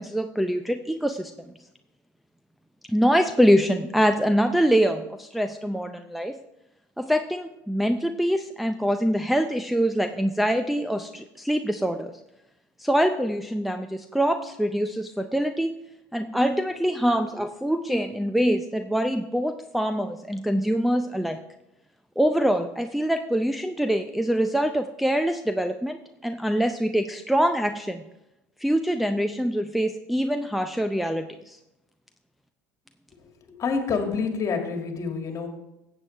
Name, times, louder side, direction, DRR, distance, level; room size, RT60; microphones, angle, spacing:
voice 1, 0.0-1.5 2.9-6.4 7.0-12.1 12.8-15.7 16.1-21.4 22.2-28.0 28.6-31.6, equal, ahead, 6 dB, 0.5 m, -24 dB
voice 2, 33.5-35.5, left 5 dB, 35° left, 4 dB, 2.1 m, -27 dB
14.5 x 8.2 x 3.3 m, 0.92 s
hypercardioid pair, 80°, 9 cm